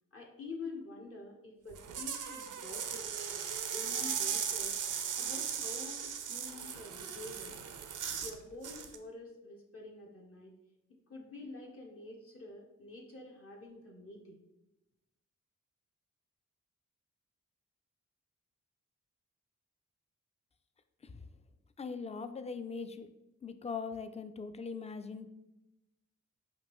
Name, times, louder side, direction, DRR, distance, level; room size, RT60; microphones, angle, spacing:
voice 1, 0.1-3.1 3.7-4.8 5.2-7.6 8.2-10.5 11.1-14.4, left 3 dB, 45° left, -1 dB, 0.8 m, -47 dB
sound 1, 1.7-8.4 8.6-9.0, right 8 dB, 85° right, 0.5 m, -37 dB
voice 2, 21.8-23.1 23.4-25.3, left 5 dB, 20° left, 10 dB, 0.3 m, -41 dB
5.1 x 2.5 x 3.0 m, 0.93 s
cardioid pair, 50°, 30 cm